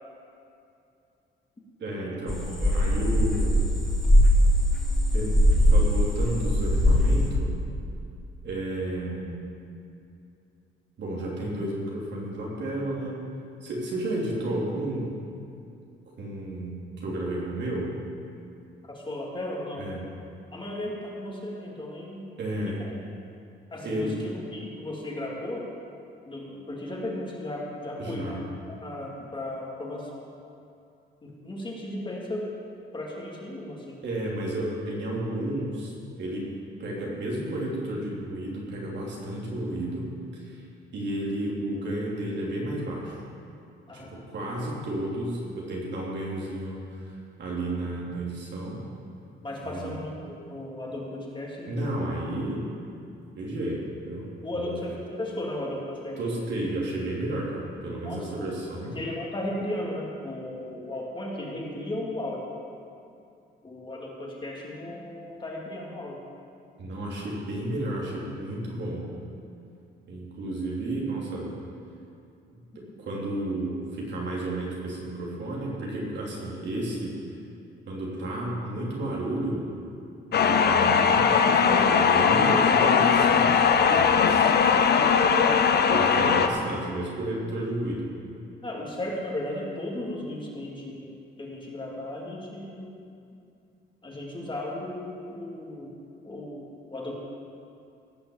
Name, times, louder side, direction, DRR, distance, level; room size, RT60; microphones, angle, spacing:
voice 1, 1.8-3.7 5.1-7.6 8.4-9.4 11.0-13.2 13.6-15.2 16.2-17.9 19.8-20.1 22.4-22.8 23.8-24.2 28.0-28.4 34.0-36.5 36.8-40.6 40.9-43.2 43.9-47.1 47.4-48.8 49.6-50.0 51.7-52.7 53.4-54.8 56.2-59.0 66.8-69.1 70.1-71.5 72.8-77.2 77.9-79.7 80.3-84.5 84.8-84.9 85.9-88.1, right 1 dB, 60° right, -4 dB, 3.5 m, -32 dB
sound 1, 2.3-5.9 6.1-7.3, equal, 5° left, 2.9 m, -20 dB
voice 2, 18.8-19.9 20.5-22.3 22.6-22.9 23.7-25.7 26.2-28.4 28.7-30.2 31.2-32.5 32.9-34.0 43.9-44.3 49.4-52.1 54.4-56.2 58.0-58.5 58.8-62.4 63.6-66.2 84.8-84.9 88.6-91.1 91.4-92.9 94.0-95.9 96.2-97.1, left 1 dB, 25° left, -3 dB, 2.9 m, -35 dB
sound 2, 80.3-86.5, left 6 dB, 55° left, 0.9 m, -20 dB
17.5 x 6.1 x 7.4 m, 2.6 s
cardioid pair, 90°, 20 cm